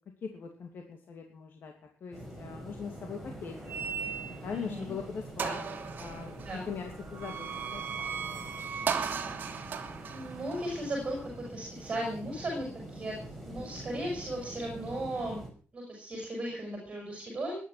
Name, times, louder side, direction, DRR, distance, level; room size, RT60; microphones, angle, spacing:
voice 1, 0.2-1.7 2.0-3.5 4.4-7.8 8.2-8.8 9.2-9.4, left 6 dB, 50° left, 3 dB, 2.9 m, -41 dB
sound 1, 2.1-15.5, right 1 dB, ahead, 5.7 m, -45 dB
sound 2, 3.7-4.6 5.0-5.1 5.4-11.5, right 7 dB, 45° right, 2.7 m, -37 dB
voice 2, 4.5-4.9 5.4-5.6 6.4-6.7 10.1-13.2 13.4-15.4 15.7-17.6, right 1 dB, 25° right, 0 dB, 7.1 m, -36 dB
21.0 x 11.0 x 6.0 m, 0.41 s
wide cardioid pair, 175°, 4 cm